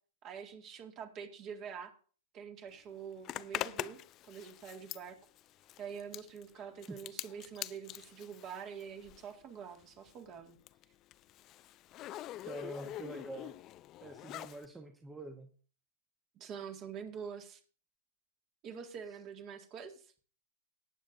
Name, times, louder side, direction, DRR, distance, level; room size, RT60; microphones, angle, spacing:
voice 1, 0.2-1.9 2.3-4.0 4.3-5.2 5.8-10.6 16.4-17.6 18.6-20.1, right 7 dB, 40° right, 5 dB, 2.1 m, -46 dB
Zipper (clothing), 3.2-9.4 9.7-14.7, left 14 dB, 40° left, 0.5 m, -44 dB
voice 2, 12.4-13.5 14.0-15.5, right 2 dB, 10° right, 4 dB, 1.2 m, -45 dB
18.5 x 8.6 x 2.7 m, 0.41 s
hypercardioid pair, 110°, 0 cm